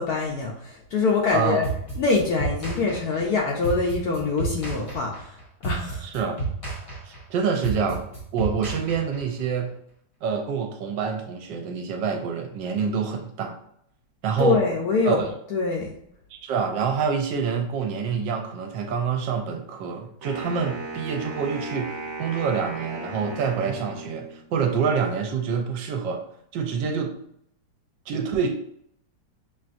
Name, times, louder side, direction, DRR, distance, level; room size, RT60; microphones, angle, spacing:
voice 1, 0.0-1.7 1.9-5.4 5.6-6.1 14.4-16.0, left 4 dB, 70° left, -1 dB, 1.0 m, -24 dB
voice 2, 1.3-1.6 6.0-6.4 7.0-9.8 10.2-13.6 14.2-14.6 15.0-15.3 16.3-26.2 26.5-27.2 28.1-28.5, right 6 dB, 75° right, 4 dB, 1.2 m, -27 dB
sound 1, 1.6-9.4, right 3 dB, 25° left, 0.7 m, -31 dB
Wind instrument woodwind instrument, 20.2-24.5, right 2 dB, 55° right, 0.9 m, -36 dB
5.7 x 2.5 x 2.5 m, 0.70 s
omnidirectional pair, 2.1 m